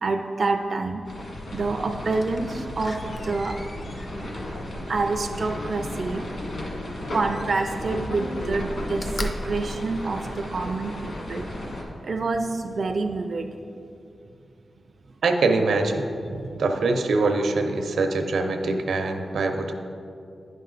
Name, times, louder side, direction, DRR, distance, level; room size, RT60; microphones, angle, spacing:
voice 1, 0.0-1.0 1.5-3.0 3.2-3.6 4.9-6.2 7.1-11.5 12.0-13.6 16.3-16.6, right 3 dB, 40° right, 4 dB, 0.3 m, -27 dB
sound 1, 1.1-11.8, left 1 dB, 50° left, 1.4 m, -35 dB
sound 2, 1.8-8.9, left 2 dB, 75° left, 0.6 m, -40 dB
Slam, 2.1-6.0 7.1-8.0 8.4-10.7 11.2-11.3, left 1 dB, 35° left, 0.5 m, -38 dB
voice 2, 15.2-16.1 16.6-19.7, right 3 dB, 85° right, 4 dB, 0.7 m, -23 dB
9.9 x 5.3 x 3.9 m, 2.6 s
wide cardioid pair, 180°, 0 cm